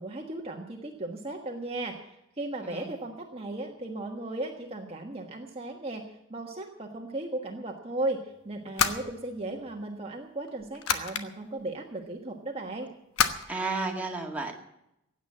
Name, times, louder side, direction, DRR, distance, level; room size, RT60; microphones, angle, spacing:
voice 1, 0.0-6.0 6.3-12.9, right 2 dB, 25° right, 1 dB, 1.4 m, -36 dB
voice 2, 2.6-2.9 13.5-14.5, right 3 dB, 5° right, 0 dB, 2.0 m, -32 dB
sound 1, 8.5-9.8 10.5-11.2 13.2-13.4, left 7 dB, 85° left, 1.2 m, -28 dB
16.0 x 9.2 x 8.7 m, 0.83 s
head